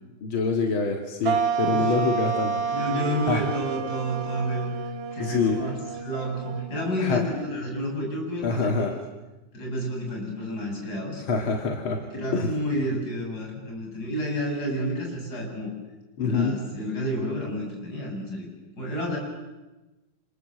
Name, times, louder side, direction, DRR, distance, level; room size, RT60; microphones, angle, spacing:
voice 1, 0.2-2.6 3.3-3.4 5.2-5.6 7.0-7.2 8.4-8.9 11.3-12.0 12.3-12.5 16.2-16.6, left 4 dB, 85° left, 3 dB, 2.8 m, -25 dB
sound 1, 1.2-7.9, right 6 dB, 70° right, 2.3 m, -30 dB
voice 2, 2.7-4.7 5.1-9.0 9.5-11.2 12.0-15.7 16.2-18.5 18.8-19.2, equal, 50° left, 0 dB, 8.0 m, -30 dB
29.0 x 26.5 x 7.8 m, 1.1 s
omnidirectional pair, 2.2 m